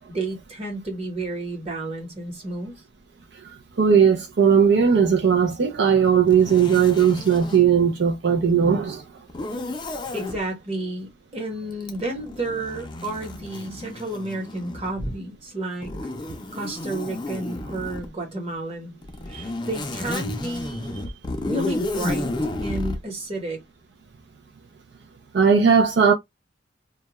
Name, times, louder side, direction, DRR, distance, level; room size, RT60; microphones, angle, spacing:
voice 1, 0.1-2.7 10.1-15.9 16.5-18.9 19.3-21.1 21.4-22.3 22.6-23.6, right 2 dB, 35° right, 1.0 m, -31 dB
voice 2, 3.8-9.0 19.3-19.4 25.3-26.1, right 7 dB, 65° right, 0.4 m, -18 dB
Zipper (clothing), 6.3-7.7 9.3-10.4 11.8-15.0 15.8-18.1 19.0-23.0, left 2 dB, 25° left, 0.4 m, -32 dB
2.3 x 2.2 x 2.9 m
head